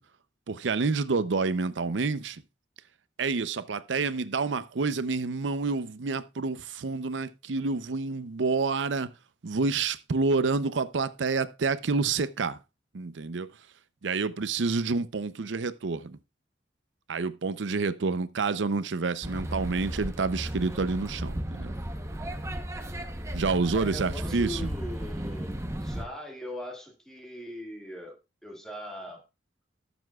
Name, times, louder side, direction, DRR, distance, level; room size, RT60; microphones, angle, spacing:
voice 1, 0.5-2.4 3.2-9.1 9.4-12.6 12.9-13.5 14.0-16.2 17.1-21.7 23.3-24.6, right 4 dB, 85° right, 0.6 m, -28 dB
sound 1, 19.2-26.1, right 1 dB, 15° right, 0.8 m, -35 dB
voice 2, 23.7-29.2, equal, 5° left, 2.0 m, -40 dB
18.5 x 7.0 x 2.3 m
head